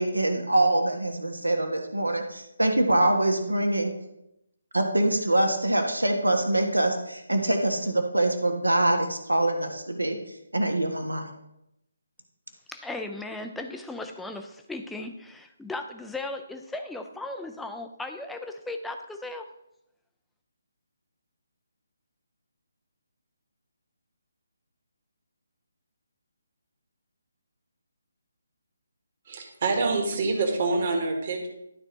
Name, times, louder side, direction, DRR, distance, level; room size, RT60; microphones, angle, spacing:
voice 1, 0.0-3.9 4.7-10.2 10.5-11.3, right 1 dB, 85° right, 4 dB, 1.4 m, -24 dB
voice 2, 12.7-19.5, left 2 dB, 5° left, 5 dB, 0.5 m, -36 dB
voice 3, 29.3-31.5, right 3 dB, 40° right, 4 dB, 1.5 m, -26 dB
11.5 x 4.4 x 3.9 m, 0.84 s
figure-of-eight pair, 145°, 0 cm